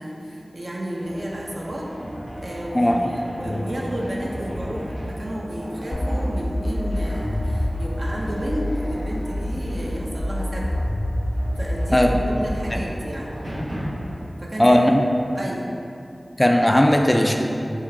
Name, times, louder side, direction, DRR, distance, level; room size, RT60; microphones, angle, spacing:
voice 1, 0.0-1.9 2.4-10.8 11.5-13.3 14.4-14.8 15.3-15.6, equal, 60° right, -3 dB, 0.7 m, -31 dB
sound 1, 1.0-14.2, equal, 85° right, 1.0 m, -35 dB
voice 2, 2.7-3.2 3.4-3.6 11.9-12.1 14.6-15.0 16.4-17.4, left 1 dB, 20° left, 2 dB, 0.3 m, -17 dB
sound 2, 5.9-8.9 9.3-12.4, left 1 dB, 75° left, 0.7 m, -26 dB
3.6 x 2.8 x 4.5 m, 2.6 s
wide cardioid pair, 45°, 0 cm